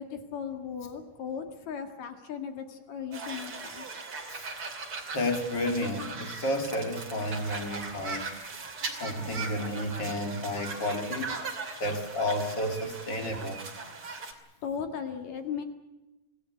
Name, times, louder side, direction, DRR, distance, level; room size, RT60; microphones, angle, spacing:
voice 1, 0.0-4.0 14.6-15.6, left 7 dB, 55° left, 6 dB, 2.9 m, -37 dB
sound 1, 3.1-14.3, right 4 dB, 40° right, 3.2 m, -39 dB
voice 2, 5.1-8.3 9.0-11.4 11.8-13.6, left 1 dB, 35° left, 4 dB, 2.9 m, -31 dB
26.0 x 17.5 x 8.2 m, 1.0 s
omnidirectional pair, 4.2 m